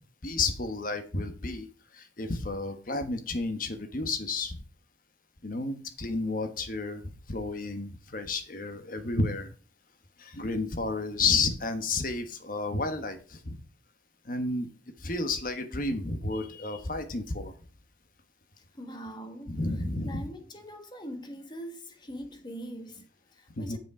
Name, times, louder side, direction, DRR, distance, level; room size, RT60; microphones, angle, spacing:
voice 1, 0.2-1.7 1.9-4.6 5.4-7.0 7.3-9.5 10.2-13.6 14.2-14.7 15.0-17.5 19.5-20.3 23.5-23.8, left 3 dB, 45° left, 1.2 m, -31 dB
voice 2, 18.7-19.6 20.0-23.8, equal, 25° left, 1.4 m, -42 dB
7.4 x 6.1 x 4.9 m
head